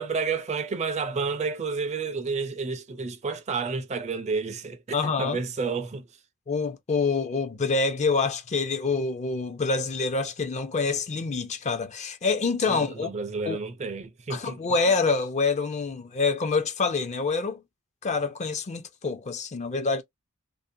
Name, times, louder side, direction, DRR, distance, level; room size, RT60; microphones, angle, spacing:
voice 1, 0.0-6.2 12.7-14.6, right 4 dB, 30° right, 0.4 m, -30 dB
voice 2, 4.9-5.4 6.5-13.1 13.5-13.6 14.3-17.6 18.0-20.0, left 4 dB, 30° left, 0.4 m, -26 dB
2.6 x 2.1 x 2.5 m
head